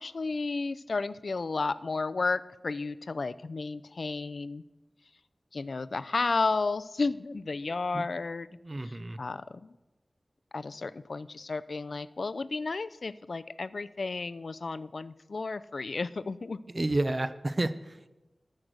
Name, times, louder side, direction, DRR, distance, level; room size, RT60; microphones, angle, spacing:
voice 1, 0.0-4.6 5.5-8.5 8.8-9.8 10.5-16.6, left 3 dB, 70° left, 14 dB, 0.4 m, -32 dB
voice 2, 8.6-9.2 16.7-18.1, right 2 dB, 40° right, 13 dB, 0.5 m, -30 dB
13.0 x 6.5 x 6.1 m, 1.1 s
wide cardioid pair, 65°, 0 cm